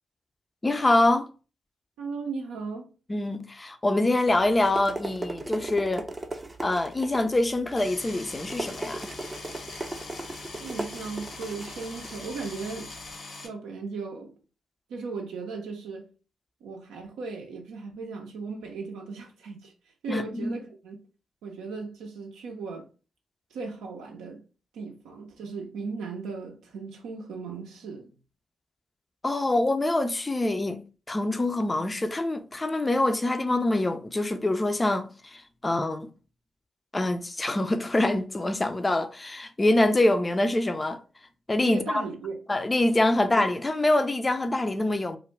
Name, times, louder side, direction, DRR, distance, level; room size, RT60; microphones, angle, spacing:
voice 1, 0.6-1.3 3.1-6.1 6.6-9.1 20.1-20.6 29.2-30.8 31.1-36.1 36.9-41.0 41.5-42.0 42.5-45.2, left 2 dB, 25° left, 0.4 m, -25 dB
voice 2, 2.0-2.9 10.6-12.9 13.4-14.3 14.9-16.1 16.6-19.7 20.0-21.0 21.4-22.9 23.5-24.4 24.7-28.2 41.6-42.4 43.2-43.3, right 4 dB, 80° right, 0.5 m, -37 dB
sound 1, 4.3-13.1, right 2 dB, 30° right, 0.5 m, -38 dB
sound 2, 7.8-13.5, left 3 dB, 60° left, 0.7 m, -42 dB
2.4 x 2.1 x 3.1 m
hypercardioid pair, 40°, 0 cm